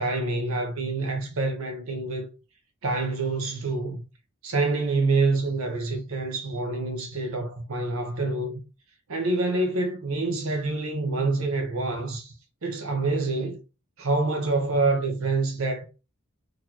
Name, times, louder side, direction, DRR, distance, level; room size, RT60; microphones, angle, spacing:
voice 1, 0.0-2.3 2.8-4.0 4.4-8.6 9.1-12.3 12.6-13.6 14.0-15.8, right 3 dB, 70° right, 0.7 m, -26 dB
4.0 x 2.5 x 2.9 m
head